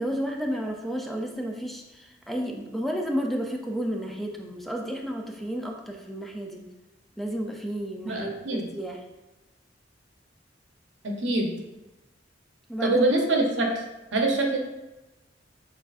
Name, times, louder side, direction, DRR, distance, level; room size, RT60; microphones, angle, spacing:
voice 1, 0.0-6.7 7.2-9.0 12.7-13.0, equal, ahead, 1 dB, 0.4 m, -32 dB
voice 2, 8.0-8.7 11.0-11.5 12.8-13.7 14.1-14.6, right 2 dB, 85° right, 1 dB, 0.8 m, -24 dB
6.7 x 2.6 x 2.4 m, 1.1 s
head